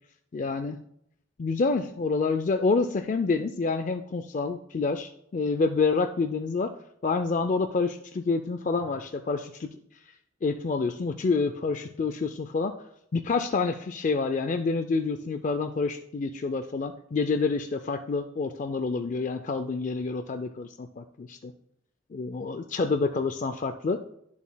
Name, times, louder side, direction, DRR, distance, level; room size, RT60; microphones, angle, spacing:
voice 1, 0.3-0.8 1.4-6.8 7.0-9.7 10.4-12.7 13.1-21.5 22.1-24.0, left 4 dB, 40° left, 7 dB, 0.4 m, -28 dB
10.5 x 7.1 x 2.2 m, 0.71 s
head